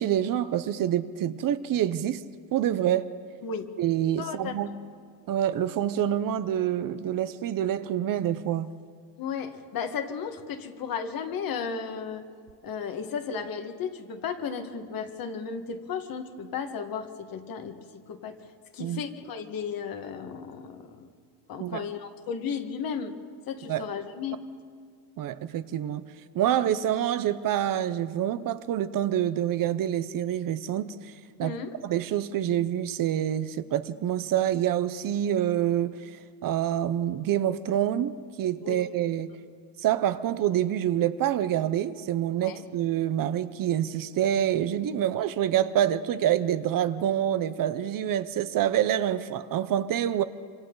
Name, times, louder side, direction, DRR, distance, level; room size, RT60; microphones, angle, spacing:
voice 1, 0.0-2.2 2.5-3.1 3.8-4.7 5.3-8.7 18.8-19.0 21.6-21.9 23.7-23.9 25.2-26.1 26.3-30.9 31.4-31.6 31.8-36.0 36.4-39.3 39.8-50.2, right 11 dB, 50° right, 0.8 m, -26 dB
voice 2, 4.2-4.7 9.2-12.2 12.6-18.4 18.7-21.1 21.5-23.1 23.5-24.4 31.4-31.8 38.6-38.8 42.4-42.6, left 6 dB, 55° left, 1.8 m, -34 dB
26.5 x 25.5 x 4.0 m
cardioid pair, 130°, 41 cm